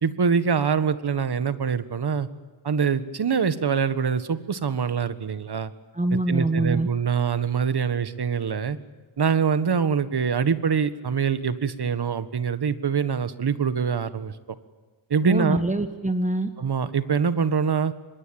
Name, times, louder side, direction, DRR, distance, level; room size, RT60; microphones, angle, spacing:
voice 1, 0.0-2.3 2.6-5.7 6.3-8.8 9.2-14.3 15.1-15.6 16.6-17.9, right 6 dB, 55° right, 13 dB, 1.7 m, -24 dB
voice 2, 5.9-6.9 15.2-16.5, right 2 dB, 15° right, 9 dB, 1.4 m, -24 dB
25.0 x 22.0 x 9.0 m, 1.3 s
wide cardioid pair, 85°, 48 cm